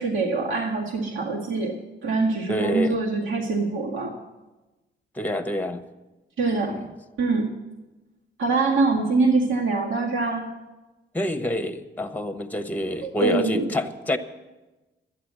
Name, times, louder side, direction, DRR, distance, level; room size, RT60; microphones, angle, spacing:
voice 1, 0.0-4.2 6.4-6.8 7.2-7.6 8.4-10.5 13.0-13.7, right 3 dB, 70° right, -2 dB, 2.0 m, -24 dB
voice 2, 2.5-3.0 5.1-5.8 6.7-6.9 11.1-14.2, left 1 dB, 10° left, 9 dB, 1.1 m, -27 dB
12.0 x 9.2 x 7.6 m, 1.1 s
supercardioid pair, 60°, 21 cm